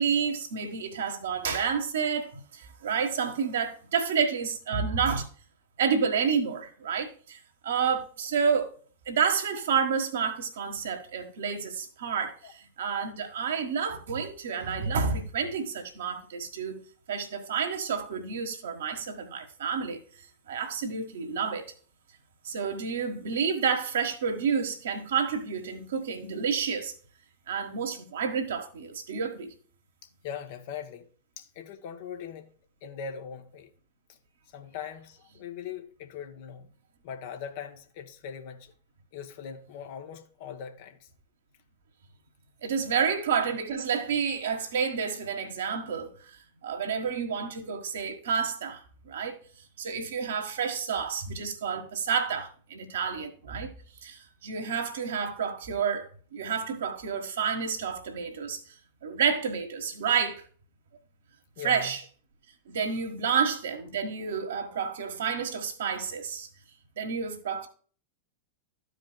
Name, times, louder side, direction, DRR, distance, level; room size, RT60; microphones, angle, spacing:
voice 1, 0.0-5.3 5.8-8.7 9.1-20.0 20.5-21.7 22.4-26.9 27.5-29.5 42.6-49.4 49.8-53.7 54.0-58.6 59.0-60.4 61.6-62.0 62.7-66.5 67.0-67.7, right 6 dB, 60° right, 1.4 m, -30 dB
voice 2, 30.2-31.1 31.4-32.5 32.8-33.7 34.5-36.7 37.0-38.7 39.1-41.1 61.6-61.9, left 7 dB, 50° left, 1.0 m, -40 dB
13.5 x 5.0 x 2.2 m
figure-of-eight pair, 90°, 0 cm